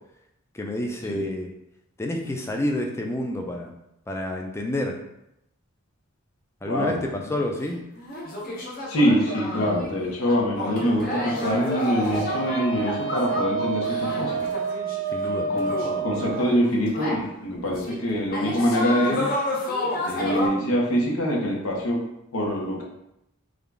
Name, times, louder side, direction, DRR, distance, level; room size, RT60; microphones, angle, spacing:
voice 1, 0.5-1.5 2.0-3.7 4.1-5.0 6.6-7.8 15.1-15.5, left 1 dB, 10° left, 2 dB, 0.3 m, -29 dB
voice 2, 6.7-7.0 8.9-14.4 15.5-19.3 20.1-22.0 22.3-22.8, equal, 80° left, -1 dB, 0.8 m, -24 dB
sound 1, 7.6-7.7 8.0-17.2 17.6-18.0 18.3-20.5, left 1 dB, 40° left, 0.6 m, -31 dB
Wind instrument woodwind instrument, 12.1-16.5, right 5 dB, 65° right, 0.5 m, -29 dB
3.7 x 2.3 x 3.3 m, 0.84 s
head